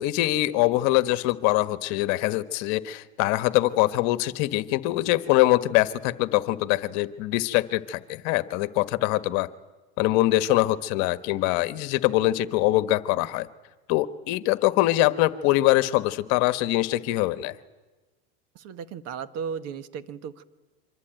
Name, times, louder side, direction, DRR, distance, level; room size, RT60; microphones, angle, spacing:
voice 1, 0.0-9.5 10.0-13.5 13.9-17.5, left 17 dB, 55° left, 12 dB, 1.4 m, -23 dB
voice 2, 18.5-20.4, right 7 dB, 45° right, 12 dB, 1.7 m, -35 dB
26.0 x 25.0 x 9.2 m, 1.2 s
supercardioid pair, 125°, 34 cm